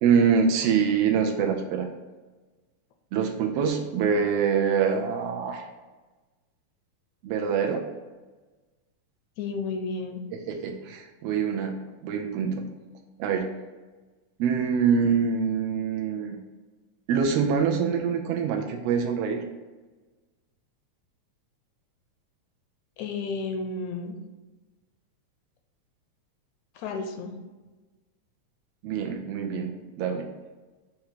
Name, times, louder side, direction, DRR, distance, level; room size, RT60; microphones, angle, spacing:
voice 1, 0.0-1.9 3.1-5.6 7.2-7.8 10.3-12.6 13.2-13.5 14.4-16.4 17.1-19.4 28.8-30.3, right 6 dB, 80° right, 2 dB, 1.4 m, -25 dB
voice 2, 9.4-10.2 23.0-24.2 26.8-27.4, left 4 dB, 80° left, 5 dB, 1.8 m, -32 dB
6.4 x 2.9 x 5.7 m, 1.2 s
omnidirectional pair, 3.3 m